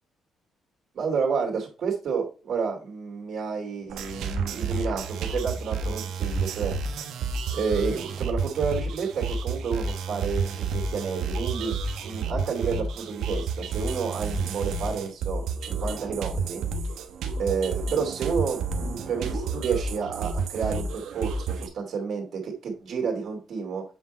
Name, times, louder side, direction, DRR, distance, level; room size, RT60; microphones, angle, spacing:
voice 1, 0.9-6.8 7.5-16.6 17.4-23.8, right 5 dB, 65° right, 1 dB, 2.8 m, -30 dB
sound 1, 3.9-21.7, right 4 dB, 80° right, 1.1 m, -30 dB
8.2 x 3.7 x 4.3 m, 0.33 s
cardioid pair, 90°, 0 cm